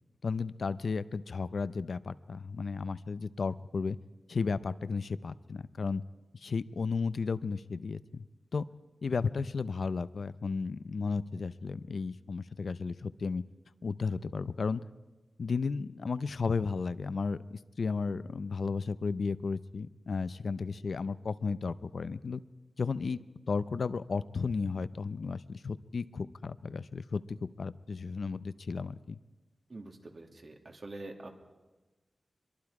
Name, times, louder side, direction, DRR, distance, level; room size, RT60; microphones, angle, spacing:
voice 1, 0.2-4.0 4.3-6.0 6.4-8.2 8.5-8.6 9.0-13.4 13.8-14.8 15.4-22.4 22.8-23.2 23.5-29.2, left 4 dB, 70° left, 14 dB, 0.6 m, -34 dB
voice 2, 29.7-31.3, right 2 dB, 55° right, 3 dB, 2.4 m, -45 dB
24.5 x 22.5 x 4.9 m, 1.2 s
wide cardioid pair, 110°, 0 cm